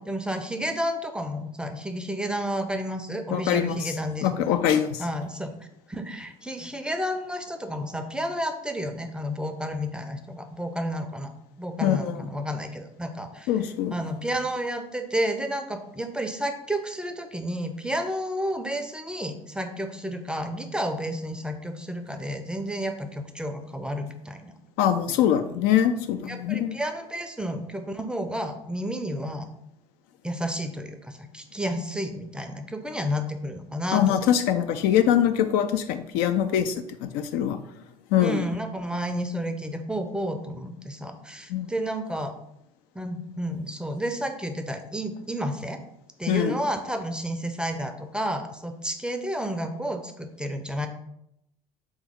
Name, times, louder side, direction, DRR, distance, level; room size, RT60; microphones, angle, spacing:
voice 1, 0.0-4.4 5.0-5.5 5.9-11.3 11.6-13.5 13.9-24.5 26.3-29.5 30.2-34.2 38.2-42.3 42.9-45.8 46.2-50.9, equal, 5° right, 6 dB, 0.5 m, -31 dB
voice 2, 3.3-3.9 4.2-5.0 11.8-12.3 13.5-13.9 24.8-26.8 33.9-37.6 38.1-38.4 41.5-41.7 46.3-46.5, left 10 dB, 65° left, 9 dB, 0.4 m, -23 dB
3.6 x 3.0 x 3.5 m, 0.78 s
hypercardioid pair, 65°, 18 cm